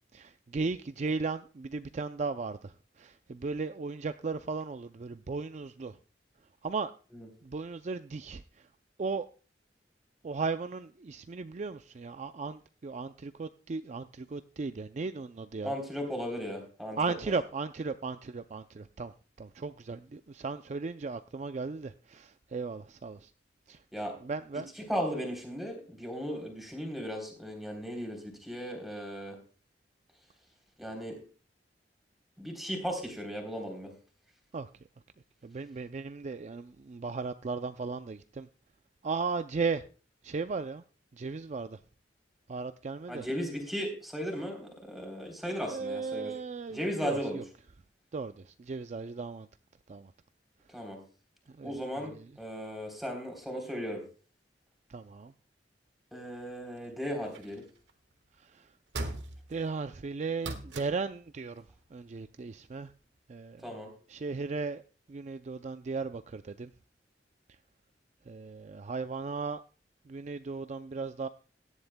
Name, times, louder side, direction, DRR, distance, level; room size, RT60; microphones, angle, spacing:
voice 1, 0.1-6.0 6.6-6.9 7.4-8.4 9.0-9.3 10.2-15.7 17.0-23.3 23.7-23.8 24.2-24.7 34.5-34.7 35.4-38.5 39.0-39.8 40.2-40.8 41.1-41.8 42.5-43.2 45.6-47.4 48.1-49.5 49.9-50.1 51.5-51.8 52.1-52.2 54.9-55.3 58.4-58.7 59.5-61.6 61.9-62.9 63.3-63.6 64.1-64.8 65.1-66.7 68.3-69.6 70.1-71.3, right 4 dB, 40° right, 0.4 m, -36 dB
voice 2, 15.6-17.0 23.9-24.2 24.8-29.4 30.8-31.2 32.4-33.9 43.1-46.3 46.7-47.4 50.7-51.0 51.6-54.0 56.1-57.6 63.6-63.9, equal, ahead, 3.4 m, -36 dB
sound 1, 57.2-57.9 58.9-59.7 60.4-61.1 62.9-63.0, right 2 dB, 80° right, 1.4 m, -39 dB
17.0 x 11.0 x 2.2 m
head